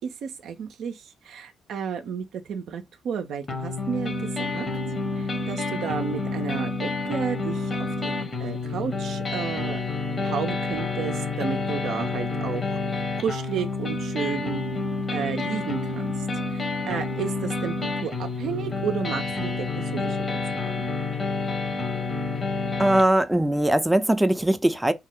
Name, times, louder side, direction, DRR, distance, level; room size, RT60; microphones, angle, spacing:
voice 1, 0.0-4.7 5.2-9.8 10.2-12.8 13.2-14.6 15.1-20.9, right 7 dB, 70° right, 0.4 m, -32 dB
sound 1, 3.5-23.0, left 3 dB, 45° left, 0.9 m, -29 dB
voice 2, 22.8-24.9, right 1 dB, 10° right, 0.4 m, -20 dB
2.7 x 2.0 x 3.7 m
hypercardioid pair, 50°, 0 cm